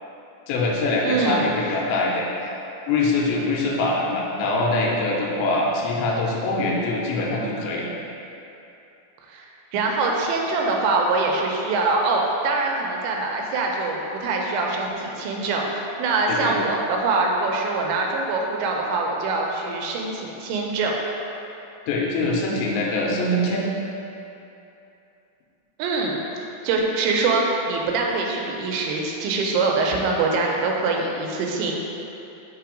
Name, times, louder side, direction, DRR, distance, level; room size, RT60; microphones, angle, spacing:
voice 1, 0.5-2.3 2.9-7.9 16.3-16.5 21.9-23.6, left 2 dB, 80° left, -2 dB, 3.0 m, -23 dB
voice 2, 1.0-1.5 9.3-21.0 25.8-26.2 26.6-31.7, right 3 dB, 85° right, 0 dB, 2.9 m, -24 dB
6.7 x 3.2 x 4.9 m, 2.9 s
omnidirectional pair, 5.2 m